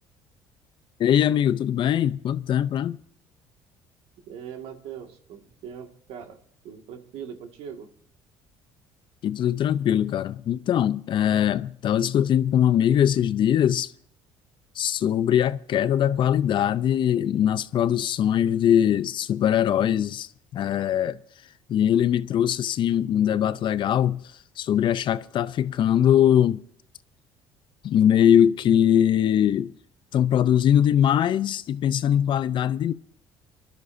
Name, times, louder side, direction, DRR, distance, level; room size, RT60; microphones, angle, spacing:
voice 1, 1.0-3.0 9.2-13.9 14.8-21.2 21.7-24.2 24.6-26.6 27.8-29.7 30.1-32.9, left 10 dB, 50° left, 0.5 m, -21 dB
voice 2, 4.3-6.4 6.6-7.9, right 8 dB, 75° right, 1.9 m, -40 dB
25.0 x 12.5 x 2.6 m
supercardioid pair, 90°, 10 cm